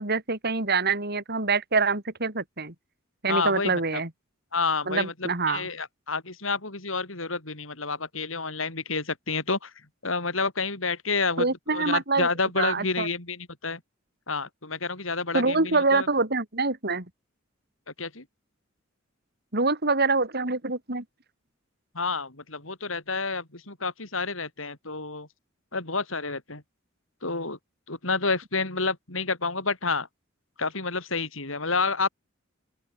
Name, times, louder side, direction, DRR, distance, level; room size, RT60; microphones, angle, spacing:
voice 1, 0.0-2.7 3.2-4.1 4.9-5.7 11.4-12.3 12.6-13.1 15.3-17.1 19.5-21.0, right 3 dB, 55° right, 4.9 m, -25 dB
voice 2, 3.3-4.0 4.5-9.7 10.0-13.8 14.3-16.1 18.0-18.2 21.9-25.3 25.7-26.6 27.2-27.6 27.9-30.1 30.6-32.1, left 4 dB, 80° left, 5.8 m, -29 dB
open air
head